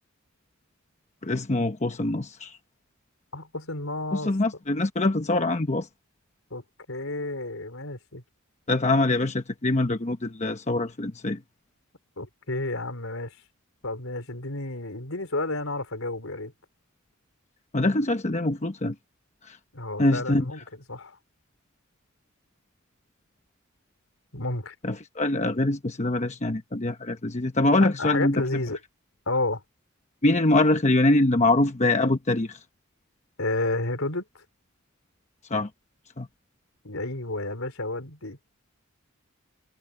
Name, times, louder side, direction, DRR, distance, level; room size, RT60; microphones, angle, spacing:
voice 1, 1.2-2.6 4.1-5.9 8.7-11.4 17.7-18.9 19.4-19.6 20.0-20.5 24.8-28.4 30.2-32.6 35.5-35.7 36.2-36.3, left 2 dB, 35° left, 1.0 m, -24 dB
voice 2, 3.3-4.3 6.5-8.2 12.2-13.4 13.8-16.5 19.7-20.6 20.9-21.2 24.3-24.7 27.8-28.8 29.3-29.6 33.4-34.4 36.8-38.4, left 2 dB, 75° left, 4.5 m, -31 dB
head